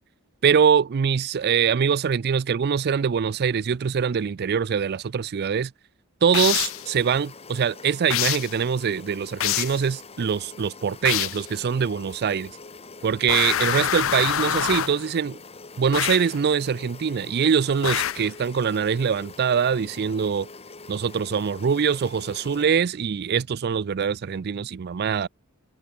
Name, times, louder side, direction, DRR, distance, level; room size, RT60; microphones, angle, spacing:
voice 1, 0.4-5.7 6.2-12.5 13.0-15.4 15.8-20.5 20.9-25.3, right 7 dB, 50° right, 0.4 m, -23 dB
sound 1, 6.3-6.9 8.1-8.6 9.4-9.8 11.1-11.5 13.3-15.0 15.9-16.4 17.8-18.3, left 11 dB, 65° left, 0.6 m, -25 dB
sound 2, 6.5-22.6, left 3 dB, 30° left, 2.3 m, -44 dB
head